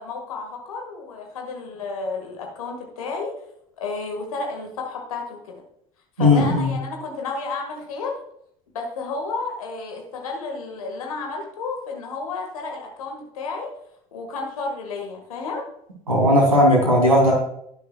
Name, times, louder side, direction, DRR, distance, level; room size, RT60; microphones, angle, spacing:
voice 1, 0.0-3.3 3.8-5.6 6.2-8.1 8.7-13.7 14.1-15.6, left 3 dB, 75° left, 1 dB, 1.7 m, -31 dB
voice 2, 6.2-6.7 16.1-17.3, left 1 dB, 90° right, -2 dB, 2.8 m, -16 dB
18.5 x 6.9 x 2.3 m, 0.73 s
figure-of-eight pair, 60°, 18 cm